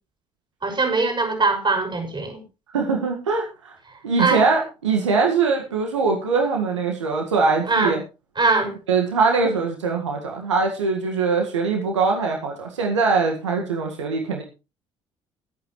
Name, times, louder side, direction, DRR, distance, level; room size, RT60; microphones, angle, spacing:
voice 1, 0.6-2.4 4.2-4.4 7.7-7.9 8.4-8.7, right 3 dB, 30° right, 5 dB, 6.2 m, -21 dB
voice 2, 2.7-3.7 4.0-8.0 8.6-14.4, right 4 dB, 90° right, 2 dB, 1.9 m, -22 dB
20.5 x 8.6 x 3.2 m, 0.29 s
hypercardioid pair, 50°, 15 cm